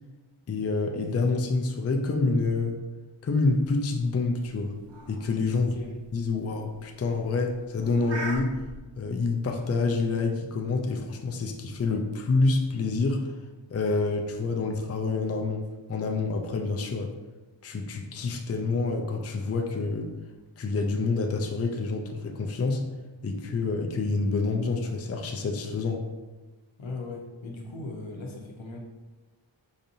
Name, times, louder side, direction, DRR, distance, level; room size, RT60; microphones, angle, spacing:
voice 1, 0.5-2.8 3.2-4.8 5.1-5.7 6.1-8.6 9.0-13.3 13.7-17.1 17.6-20.1 20.6-22.8 23.2-26.0, left 3 dB, 35° left, 3 dB, 0.4 m, -27 dB
sound 1, 3.5-8.8, right 2 dB, 65° right, 0.8 m, -42 dB
voice 2, 5.6-5.9 26.8-28.8, left 3 dB, 75° left, 0 dB, 0.8 m, -38 dB
4.9 x 2.6 x 2.7 m, 1.2 s
wide cardioid pair, 45°, 47 cm